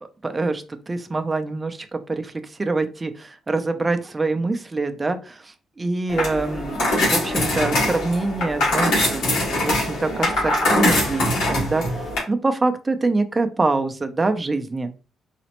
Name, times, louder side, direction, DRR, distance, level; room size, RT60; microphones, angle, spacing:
voice 1, 0.2-6.8 7.1-9.2 9.6-14.9, right 3 dB, 25° right, 7 dB, 0.4 m, -25 dB
sound 1, 6.1-12.2, left 1 dB, 85° left, 1.8 m, -22 dB
4.1 x 2.0 x 2.9 m, 0.33 s
cardioid pair, 90°, 0 cm